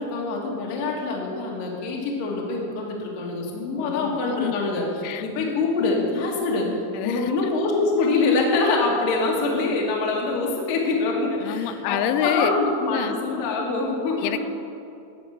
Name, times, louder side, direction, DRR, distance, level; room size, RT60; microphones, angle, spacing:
voice 1, 0.0-4.8 5.2-6.7 7.0-14.4, left 3 dB, 65° left, -1 dB, 2.4 m, -24 dB
voice 2, 3.8-4.7 5.0-5.2 6.9-7.5 11.4-12.5 12.9-13.2 14.2-14.5, left 11 dB, 85° left, 9 dB, 3.0 m, -27 dB
11.5 x 5.2 x 7.2 m, 2.6 s
omnidirectional pair, 5.6 m